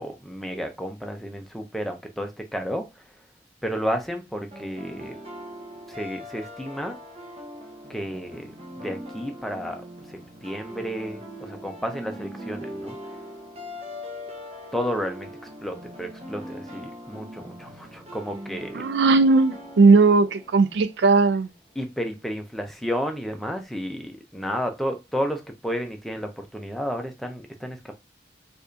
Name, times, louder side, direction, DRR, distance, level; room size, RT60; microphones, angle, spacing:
voice 1, 0.0-3.0 3.6-5.2 5.9-7.0 7.9-8.5 8.8-13.2 14.7-15.3 15.6-18.8 21.8-27.9, equal, ahead, 0.6 m, -32 dB
sound 1, 4.5-21.4, equal, 35° right, 0.9 m, -41 dB
voice 2, 18.7-21.5, right 3 dB, 80° right, 0.4 m, -18 dB
4.7 x 2.5 x 2.5 m
head